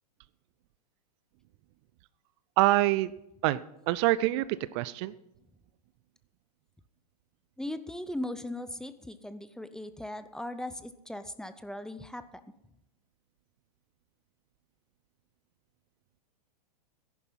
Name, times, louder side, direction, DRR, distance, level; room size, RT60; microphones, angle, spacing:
voice 1, 2.6-3.1 3.4-3.6 3.9-4.5 4.7-5.1, right 16 dB, 45° right, 17 dB, 0.5 m, -25 dB
voice 2, 7.6-12.4, left 1 dB, 5° left, 12 dB, 0.6 m, -38 dB
14.0 x 11.0 x 5.7 m, 0.85 s
hypercardioid pair, 115°, 21 cm